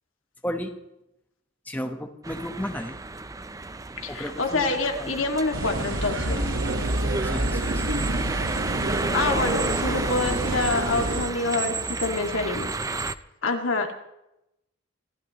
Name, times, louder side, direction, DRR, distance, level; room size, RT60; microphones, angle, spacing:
voice 1, 1.7-2.9 4.1-5.2 7.2-7.9, equal, 10° left, 4 dB, 1.2 m, -33 dB
sound 1, 2.2-13.1, right 3 dB, 15° right, 0.6 m, -31 dB
voice 2, 4.0-6.4 9.1-12.7 13.4-13.9, left 3 dB, 85° left, 4 dB, 2.1 m, -26 dB
sound 2, 5.5-11.2, right 1 dB, 70° right, 1.4 m, -28 dB
26.0 x 15.0 x 3.1 m, 0.87 s
head